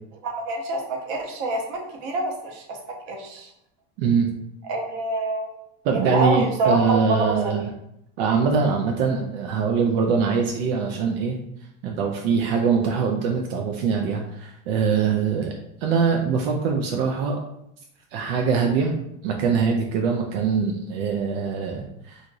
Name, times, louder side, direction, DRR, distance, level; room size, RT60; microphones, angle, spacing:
voice 1, 0.2-3.5 4.7-5.5 5.9-7.5, right 2 dB, 60° right, 2 dB, 0.8 m, -26 dB
voice 2, 4.0-4.3 5.8-7.7 8.2-11.4 11.8-15.5 15.8-17.4 18.1-18.9 19.2-22.2, right 5 dB, 85° right, 2 dB, 0.5 m, -23 dB
2.9 x 2.5 x 2.5 m, 0.79 s
cardioid pair, 150°, 30 cm